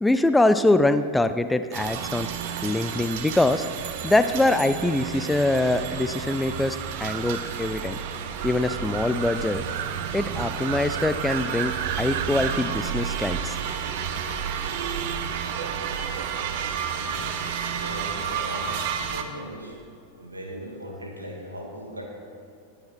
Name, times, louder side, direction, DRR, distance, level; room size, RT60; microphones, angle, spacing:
voice 1, 0.0-2.3 2.6-3.7 4.0-8.0 8.4-9.6 10.1-13.6, left 2 dB, 5° left, 11 dB, 0.4 m, -23 dB
sound 1, 1.7-19.2, right 7 dB, 50° right, 0.9 m, -30 dB
voice 2, 17.0-19.8 20.2-22.0, equal, 80° right, -1 dB, 2.4 m, -38 dB
18.5 x 8.9 x 4.5 m, 2.5 s
figure-of-eight pair, 90°, 0 cm